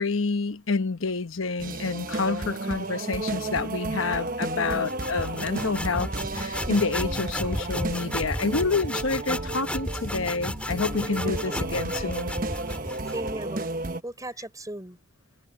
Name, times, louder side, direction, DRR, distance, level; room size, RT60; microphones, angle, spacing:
voice 1, 0.0-12.3, left 4 dB, 70° left, 1.0 m, -28 dB
sound 1, 1.6-14.0, right 2 dB, 40° right, 1.0 m, -33 dB
voice 2, 4.5-4.9 11.0-11.2 11.5-11.6 11.9-12.0 13.1-15.0, right 1 dB, 15° right, 4.4 m, -38 dB
sound 2, 4.6-13.3, left 1 dB, 5° left, 3.2 m, -33 dB
head